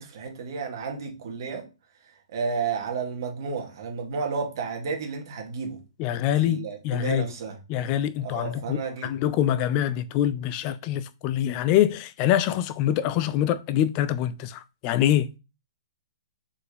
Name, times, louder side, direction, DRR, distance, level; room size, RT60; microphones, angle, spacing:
voice 1, 0.0-1.6 2.3-5.8 6.4-7.6 8.2-9.1, right 5 dB, 55° right, 2.0 m, -32 dB
voice 2, 6.0-7.2 7.7-15.3, left 11 dB, 35° left, 0.4 m, -25 dB
4.4 x 4.4 x 5.1 m
hypercardioid pair, 135°, 3 cm